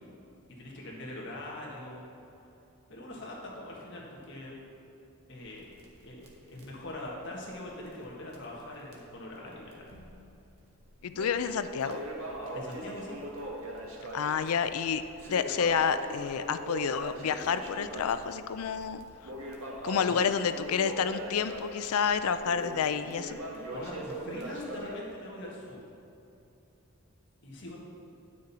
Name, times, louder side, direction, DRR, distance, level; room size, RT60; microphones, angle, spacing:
voice 1, 0.6-2.0 2.9-4.6 5.3-5.8 6.0-10.1 12.5-13.2 19.8-20.2 23.7-25.8 27.4-27.8, left 1 dB, 55° left, -3 dB, 1.6 m, -42 dB
Crackle, 5.4-8.1 8.3-8.4 8.9-9.0 9.7-10.3 10.7-25.0, right 1 dB, 85° right, 1.4 m, -41 dB
voice 2, 11.0-12.0 14.1-15.0 15.3-19.1 19.8-23.4, left 6 dB, 85° left, 11 dB, 0.4 m, -29 dB
9.9 x 6.3 x 4.2 m, 2.8 s
head